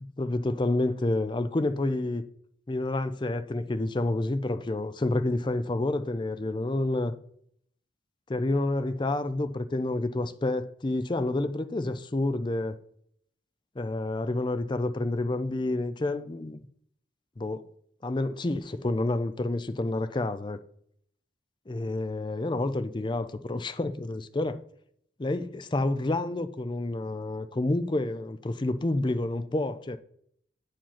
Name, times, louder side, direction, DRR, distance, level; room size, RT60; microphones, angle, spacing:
voice 1, 0.2-2.2 2.7-7.1 8.3-12.8 13.8-16.6 17.4-17.6 18.0-20.6 21.7-24.6 25.2-30.0, left 2 dB, 25° left, 0.4 m, -29 dB
8.6 x 5.0 x 5.7 m
head